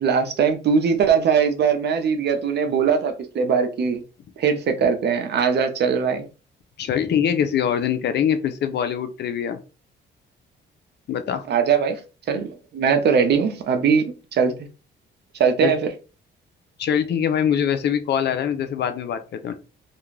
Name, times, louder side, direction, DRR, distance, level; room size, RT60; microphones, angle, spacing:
voice 1, 0.0-4.0 4.4-6.2 11.5-12.0 12.3-14.0 14.3-14.5 15.4-15.9, right 6 dB, 60° right, 0.6 m, -20 dB
voice 2, 6.8-9.6 11.1-11.4 15.6-15.7 16.8-19.5, left 8 dB, 60° left, 0.5 m, -23 dB
2.4 x 2.2 x 3.1 m
cardioid pair, 90°, 20 cm